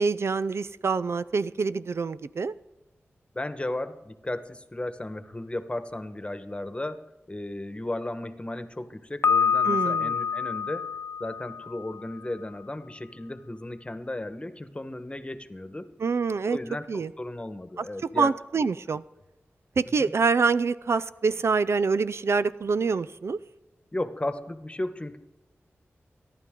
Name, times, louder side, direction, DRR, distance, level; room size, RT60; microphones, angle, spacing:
voice 1, 0.0-2.5 9.7-10.1 16.0-16.6 16.9-17.1 17.8-17.9 18.2-19.0 19.8-23.4, right 4 dB, 65° right, 15 dB, 0.4 m, -26 dB
voice 2, 3.3-7.0 7.3-10.9 11.2-15.9 16.5-18.6 19.9-20.1 23.9-25.2, left 1 dB, 25° left, 9 dB, 1.3 m, -35 dB
Piano, 9.2-12.1, left 6 dB, 55° left, 0.4 m, -26 dB
24.0 x 11.0 x 3.8 m, 1.0 s
cardioid pair, 55°, 5 cm